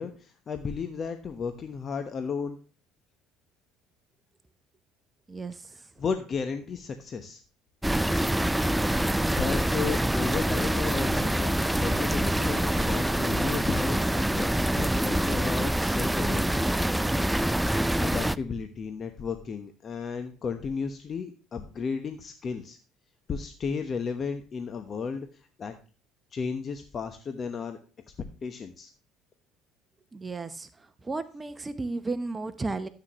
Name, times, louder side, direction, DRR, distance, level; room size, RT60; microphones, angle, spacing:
voice 1, 0.0-2.6 5.7-7.4 8.1-8.3 9.4-14.5 14.8-16.7 17.7-22.8 23.3-25.7 26.3-27.8 28.4-28.9, left 5 dB, 40° left, 7 dB, 1.1 m, -34 dB
sound 1, 7.8-18.4, right 1 dB, 5° right, 0.4 m, -25 dB
voice 2, 30.1-30.7 31.0-32.9, right 3 dB, 20° right, 11 dB, 0.9 m, -33 dB
13.5 x 8.1 x 3.1 m, 0.37 s
figure-of-eight pair, 60°, 0 cm